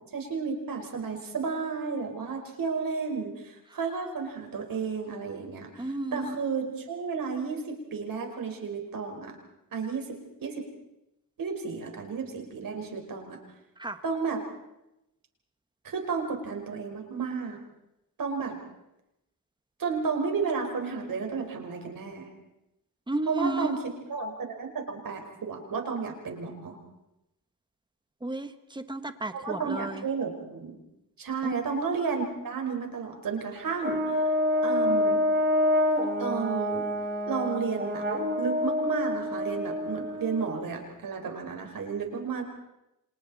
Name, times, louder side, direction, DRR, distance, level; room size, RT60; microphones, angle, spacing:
voice 1, 0.0-9.4 9.7-10.7 11.4-13.4 14.0-14.4 15.8-17.6 18.2-18.6 19.8-22.3 23.3-26.8 29.3-30.8 31.2-34.3 34.6-35.2 36.2-36.9 37.3-38.1 38.4-42.4, right 5 dB, 70° right, 3 dB, 4.8 m, -32 dB
voice 2, 5.8-6.4 13.8-14.0 23.1-23.7 28.2-30.0 31.4-31.5, right 2 dB, 15° right, 9 dB, 1.5 m, -32 dB
Brass instrument, 33.8-40.5, left 1 dB, 30° right, 3.5 m, -27 dB
30.0 x 26.0 x 4.2 m, 0.89 s
wide cardioid pair, 115°, 35 cm